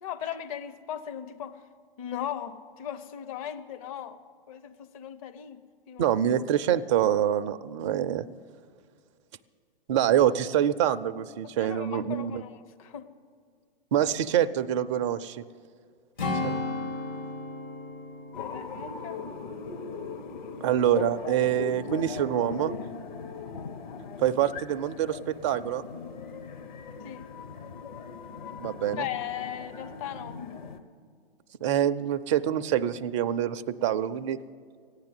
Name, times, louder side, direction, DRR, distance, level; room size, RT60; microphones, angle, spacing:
voice 1, 0.0-1.6 2.0-4.2 4.5-5.6 5.9-6.1 11.6-13.1 18.4-19.2 27.0-27.3 29.0-30.4, left 10 dB, 35° left, 10 dB, 0.8 m, -37 dB
voice 2, 6.0-8.3 9.9-12.4 13.9-15.4 16.4-16.5 20.6-22.7 24.2-25.8 28.6-29.1 31.6-34.4, right 10 dB, 30° right, 10 dB, 0.4 m, -26 dB
Strum, 16.2-20.9 21.3-21.5, left 2 dB, 70° left, 3.1 m, -36 dB
sound 1, 18.3-30.8, left 5 dB, 50° left, 1.1 m, -39 dB
14.5 x 9.8 x 7.8 m, 2.1 s
figure-of-eight pair, 115°, 30 cm